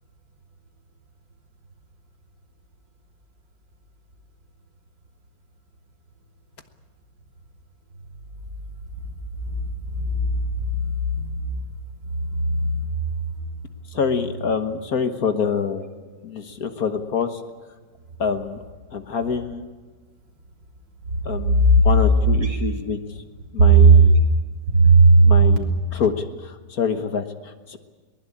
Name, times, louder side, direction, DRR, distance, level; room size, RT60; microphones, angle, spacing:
voice 1, 9.9-11.3 12.4-12.5 21.7-21.8 23.8-23.9 24.7-25.6, right 3 dB, 70° right, 1 dB, 4.2 m, -16 dB
voice 2, 13.9-15.9 16.2-17.4 18.2-18.6 18.9-19.6 21.2-23.0 23.5-24.2 25.2-27.8, left 6 dB, 55° left, 8 dB, 1.7 m, -26 dB
22.5 x 20.0 x 8.6 m, 1.4 s
omnidirectional pair, 2.0 m